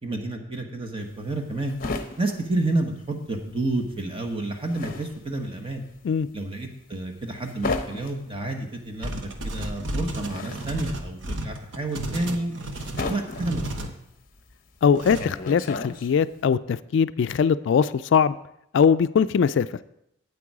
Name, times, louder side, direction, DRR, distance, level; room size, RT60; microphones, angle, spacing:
voice 1, 0.0-1.7 2.2-5.8 6.3-9.1 9.4-12.5 13.1-13.9, right 2 dB, 25° right, 3 dB, 1.2 m, -30 dB
sound 1, 1.0-3.5 3.8-16.4, left 3 dB, 45° left, 0.8 m, -35 dB
sound 2, 9.0-13.9 14.9-15.2, right 1 dB, 65° right, 1.0 m, -32 dB
voice 2, 14.8-18.4 18.7-19.7, left 6 dB, 60° left, 14 dB, 0.3 m, -21 dB
8.6 x 8.5 x 4.8 m, 0.78 s
head